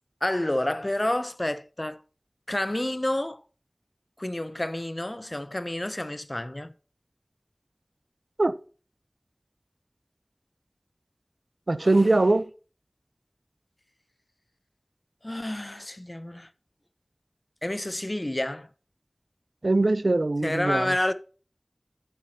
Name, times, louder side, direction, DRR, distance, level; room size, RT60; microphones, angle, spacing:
voice 1, 0.2-2.0 2.5-3.4 4.2-6.7 11.8-12.1 15.2-16.5 17.6-18.7 20.4-21.1, left 1 dB, 40° left, 0.6 m, -29 dB
voice 2, 11.7-12.4 19.6-20.9, right 2 dB, 85° right, 0.5 m, -22 dB
9.7 x 6.8 x 2.8 m
wide cardioid pair, 40°, 0 cm